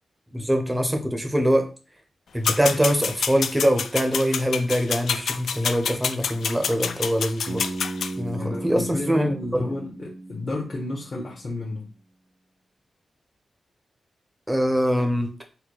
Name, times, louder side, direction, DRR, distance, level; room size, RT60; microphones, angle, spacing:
voice 1, 0.3-1.6 2.3-7.6 8.2-9.3 14.5-15.4, equal, 10° right, 4 dB, 0.6 m, -23 dB
sound 1, 2.4-8.1, left 6 dB, 85° left, 0.3 m, -27 dB
Bass guitar, 7.5-11.5, right 2 dB, 85° right, 0.7 m, -36 dB
voice 2, 8.3-11.9, left 2 dB, 35° left, -2 dB, 0.8 m, -32 dB
4.0 x 2.2 x 4.6 m, 0.34 s
wide cardioid pair, 175°, 0 cm